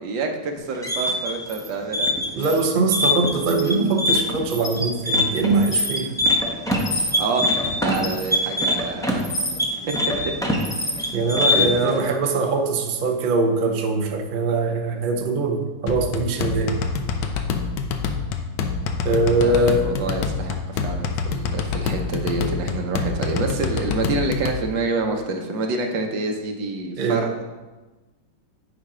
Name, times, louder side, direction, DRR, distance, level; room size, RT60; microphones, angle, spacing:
voice 1, 0.0-2.4 6.9-7.5 7.8-10.3 11.5-12.0 19.4-27.4, right 3 dB, 90° right, 3 dB, 1.7 m, -27 dB
sound 1, 0.6-11.9, left 1 dB, 5° left, 0.4 m, -23 dB
voice 2, 2.4-6.1 11.1-16.8 19.0-19.9 27.0-27.2, right 3 dB, 45° right, 3 dB, 0.7 m, -22 dB
sound 2, 15.9-24.6, left 5 dB, 75° left, 1.3 m, -26 dB
9.8 x 4.2 x 4.9 m, 1.2 s
omnidirectional pair, 2.0 m